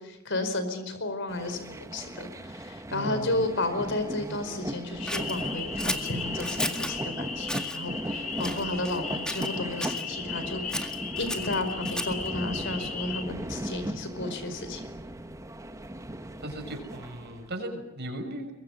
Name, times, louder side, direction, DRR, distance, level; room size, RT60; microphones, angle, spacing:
voice 1, 0.0-14.9, left 2 dB, 60° left, 10 dB, 4.8 m, -33 dB
sound 1, 1.3-17.5, right 1 dB, 15° right, 1.2 m, -37 dB
voice 2, 2.9-3.5 16.4-18.5, right 1 dB, 50° right, 5 dB, 6.7 m, -37 dB
sound 2, 5.0-13.2, left 5 dB, 35° left, 2.6 m, -36 dB
Scissors, 5.1-7.0 7.4-7.8 8.4-9.0 9.3-10.1 10.7-12.3, left 1 dB, 5° left, 1.9 m, -34 dB
23.5 x 23.5 x 9.1 m, 0.90 s
head